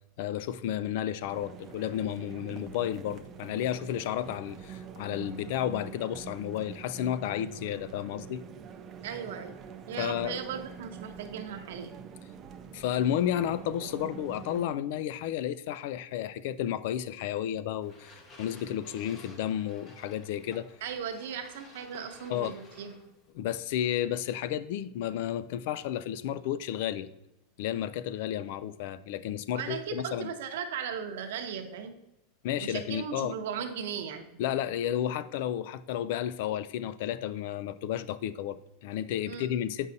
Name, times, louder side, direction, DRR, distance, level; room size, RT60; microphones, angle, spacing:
voice 1, 0.2-8.4 10.0-10.4 12.7-20.7 22.3-22.6 23.3-27.1 27.6-30.3 32.4-33.4 34.4-39.9, left 11 dB, 55° left, 16 dB, 0.3 m, -32 dB
sound 1, 1.3-14.7, right 7 dB, 25° right, 0.4 m, -45 dB
voice 2, 9.0-9.6 9.9-12.0 20.8-22.9 29.5-32.0 32.6-34.3 39.3-39.5, right 7 dB, 70° right, 6 dB, 0.8 m, -37 dB
sound 2, 17.8-23.3, left 2 dB, 25° left, 0.8 m, -53 dB
8.2 x 5.4 x 2.7 m, 0.89 s
supercardioid pair, 165°, 0 cm